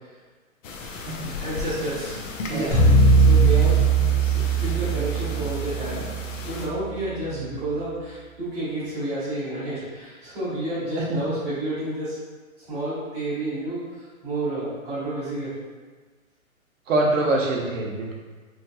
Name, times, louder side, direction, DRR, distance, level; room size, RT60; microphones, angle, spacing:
sound 1, 0.6-6.7, left 3 dB, 65° left, 0.6 m, -36 dB
voice 1, 1.4-2.2 2.5-2.7 3.1-3.8 4.2-4.3 4.6-6.1 6.4-12.2 12.7-13.9 14.2-15.5, right 1 dB, 10° right, -15 dB, 1.2 m, -30 dB
sound 2, 2.7-7.0, right 3 dB, 35° left, 1.2 m, -20 dB
voice 2, 11.0-11.3 16.9-18.1, right 2 dB, 65° right, -1 dB, 0.7 m, -25 dB
3.1 x 2.7 x 2.2 m, 1.4 s
hypercardioid pair, 160°, 42 cm